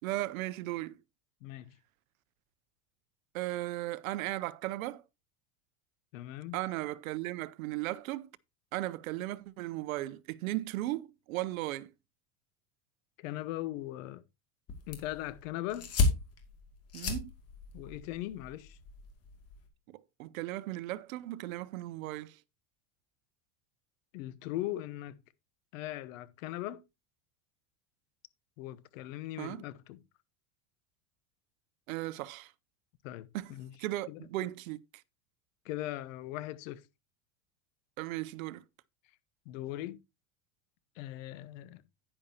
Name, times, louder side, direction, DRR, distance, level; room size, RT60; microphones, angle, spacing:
voice 1, 0.0-1.0 3.3-5.0 6.5-8.3 8.7-11.9 16.9-17.3 19.9-22.4 29.4-29.6 31.9-32.5 33.3-33.5 33.8-34.8 38.0-38.6, right 17 dB, 90° right, 0.7 m, -36 dB
voice 2, 1.4-1.7 6.1-6.6 13.2-14.2 14.9-15.9 17.7-18.8 24.1-25.2 25.7-26.8 28.6-30.0 33.0-33.7 34.1-34.3 35.6-36.8 39.5-40.0 41.0-41.8, left 15 dB, 70° left, 1.0 m, -39 dB
sound 1, 14.7-19.7, left 3 dB, 35° left, 2.5 m, -34 dB
9.9 x 9.8 x 2.9 m
supercardioid pair, 145°, 40 cm